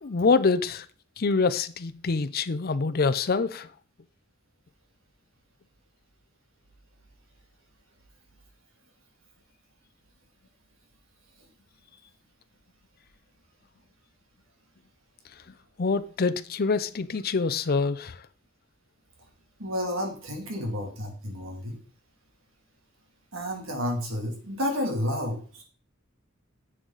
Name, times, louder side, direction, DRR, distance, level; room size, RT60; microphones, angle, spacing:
voice 1, 0.0-0.9 1.2-3.7 15.8-18.2, left 4 dB, 50° left, 0.6 m, -25 dB
voice 2, 19.6-21.8 23.3-25.6, left 1 dB, 80° right, 2.9 m, -31 dB
10.0 x 7.6 x 4.0 m
head